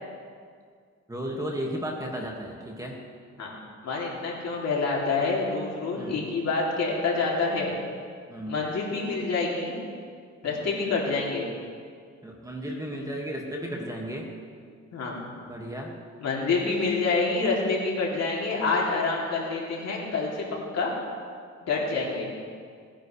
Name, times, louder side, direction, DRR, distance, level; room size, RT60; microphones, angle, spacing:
voice 1, 1.1-3.0 5.9-6.3 8.3-8.6 10.4-10.7 12.2-14.3 15.5-15.9, equal, 10° right, -1 dB, 2.1 m, -34 dB
voice 2, 3.8-7.7 8.5-9.7 10.4-11.5 14.9-15.1 16.2-20.4 20.7-20.9 21.6-22.3, left 3 dB, 60° left, -4 dB, 3.3 m, -27 dB
19.5 x 10.0 x 3.4 m, 2.1 s
cardioid pair, 90°, 30 cm